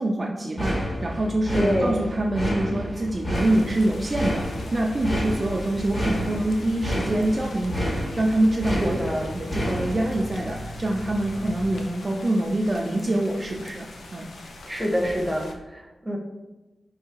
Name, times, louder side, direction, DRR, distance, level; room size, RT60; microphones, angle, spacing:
voice 1, 0.0-9.0 9.3-14.3, right 1 dB, 35° right, -1 dB, 0.4 m, -25 dB
sound 1, 0.6-11.9, equal, 40° left, 1.5 m, -30 dB
voice 2, 1.5-2.0 8.7-9.3 14.6-16.2, equal, ahead, -1 dB, 0.8 m, -26 dB
sound 2, 3.3-15.5, left 2 dB, 85° left, 0.4 m, -43 dB
4.7 x 2.7 x 2.9 m, 1.1 s
wide cardioid pair, 80°, 0 cm